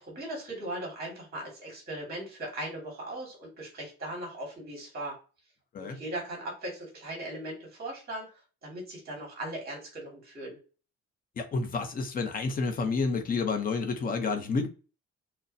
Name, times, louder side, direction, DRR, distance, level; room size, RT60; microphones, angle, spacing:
voice 1, 0.1-5.2 5.8-8.3 8.6-10.6, right 1 dB, 30° right, 2.0 m, -38 dB
voice 2, 11.4-14.7, left 4 dB, 30° left, 0.6 m, -29 dB
6.2 x 2.1 x 2.7 m
cardioid pair, 180°, 30 cm